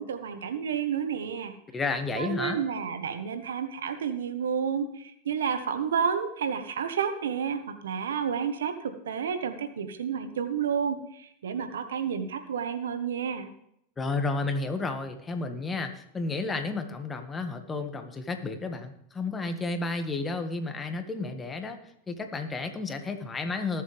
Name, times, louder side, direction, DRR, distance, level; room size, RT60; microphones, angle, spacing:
voice 1, 0.0-1.5 2.2-13.5, right 7 dB, 85° right, 9 dB, 1.3 m, -30 dB
voice 2, 1.7-2.6 14.0-21.8 22.1-23.8, left 3 dB, 20° left, 6 dB, 1.8 m, -32 dB
19.5 x 7.4 x 3.5 m, 0.73 s
hypercardioid pair, 100°, 0 cm